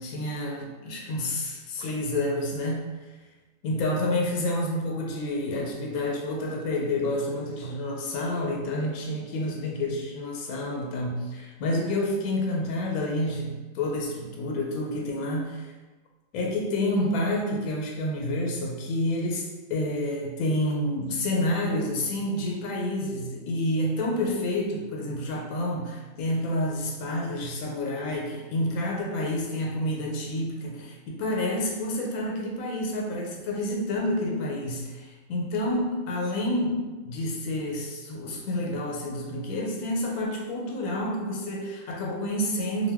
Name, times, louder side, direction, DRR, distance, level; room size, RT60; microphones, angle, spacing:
voice 1, 0.0-2.8 3.6-15.7 16.3-42.9, left 1 dB, 90° left, -1 dB, 1.1 m, -29 dB
2.5 x 2.2 x 3.4 m, 1.2 s
omnidirectional pair, 1.5 m